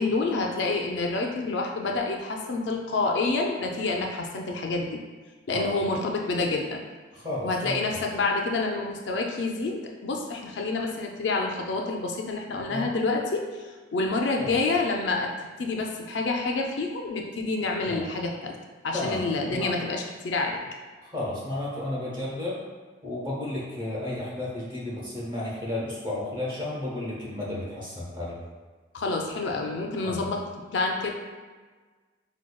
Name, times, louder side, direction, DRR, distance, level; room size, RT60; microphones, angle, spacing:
voice 1, 0.0-5.0 5.5-6.8 7.4-15.3 15.6-18.6 18.8-20.6 28.9-30.4 30.7-31.1, left 3 dB, 70° left, 1 dB, 0.4 m, -28 dB
voice 2, 7.1-8.0 12.7-12.9 14.4-14.5 17.9-18.0 18.9-19.7 21.0-22.6 23.0-28.4 30.0-30.2, left 1 dB, 25° right, -6 dB, 0.9 m, -33 dB
4.7 x 2.2 x 2.2 m, 1.4 s
head